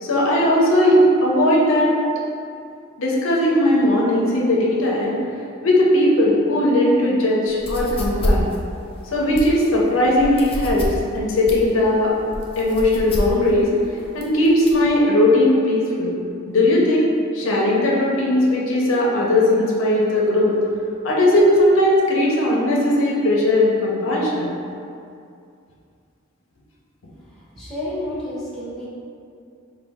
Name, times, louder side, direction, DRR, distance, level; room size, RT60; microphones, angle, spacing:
voice 1, 0.0-1.9 3.0-5.2 5.6-8.5 9.0-10.9 11.1-12.1 12.6-13.7 14.1-16.2 16.5-17.1 17.3-20.6 21.0-24.5, left 1 dB, 75° left, -4 dB, 0.7 m, -18 dB
sound 1, 7.5-14.9, left 1 dB, 25° left, 0.4 m, -28 dB
voice 2, 27.5-28.9, left 1 dB, ahead, -11 dB, 1.0 m, -30 dB
4.5 x 2.3 x 3.4 m, 2.4 s
head